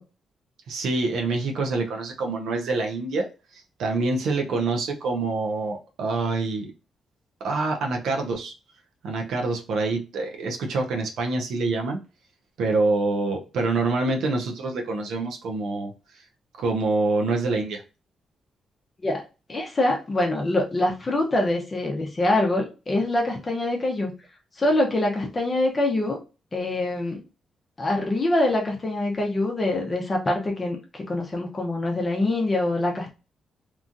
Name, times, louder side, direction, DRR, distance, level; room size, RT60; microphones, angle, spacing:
voice 1, 0.7-6.7 7.4-8.5 9.0-12.0 12.6-15.9 16.6-17.8, right 3 dB, 85° right, 2 dB, 0.6 m, -26 dB
voice 2, 19.5-24.1 24.6-26.2 26.5-27.2 27.8-33.1, left 2 dB, 30° left, 1 dB, 0.7 m, -24 dB
3.0 x 2.3 x 2.5 m, 0.31 s
cardioid pair, 110°, 0 cm